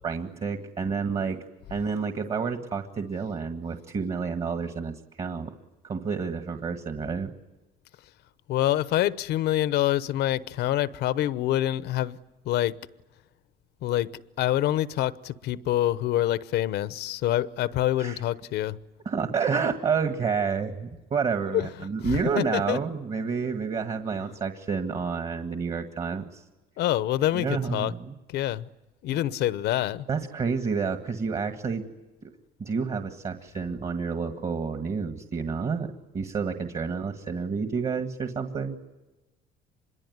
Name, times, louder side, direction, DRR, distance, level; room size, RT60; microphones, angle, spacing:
voice 1, 0.0-1.4 1.7-5.5 5.8-7.3 18.0-18.2 19.1-26.5 27.3-28.2 29.1-29.2 30.1-31.9 32.2-32.3 32.6-38.8, right 5 dB, 35° right, 1.8 m, -29 dB
voice 2, 8.5-12.2 12.5-12.8 13.8-18.8 21.5-21.6 22.4-22.8 26.8-27.9 28.3-28.7 29.0-30.1, left 13 dB, 80° left, 0.9 m, -26 dB
26.0 x 22.5 x 9.5 m
cardioid pair, 110°, 17 cm